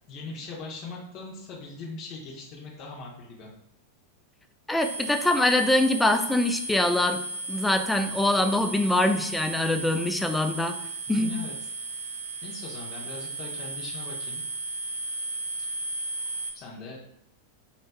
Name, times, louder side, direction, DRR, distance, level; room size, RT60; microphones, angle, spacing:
voice 1, 0.1-3.5 11.1-11.5 11.8-11.9 12.4-14.4 15.2-15.3 16.5-17.1, left 3 dB, 40° left, -4 dB, 0.8 m, -40 dB
voice 2, 4.7-7.2 7.5-10.8 11.1-11.3, left 1 dB, 5° left, 6 dB, 0.3 m, -24 dB
sound 1, 4.8-16.5, right 2 dB, 70° right, 0.5 m, -35 dB
4.1 x 3.1 x 2.2 m, 0.81 s
figure-of-eight pair, 90°, 0 cm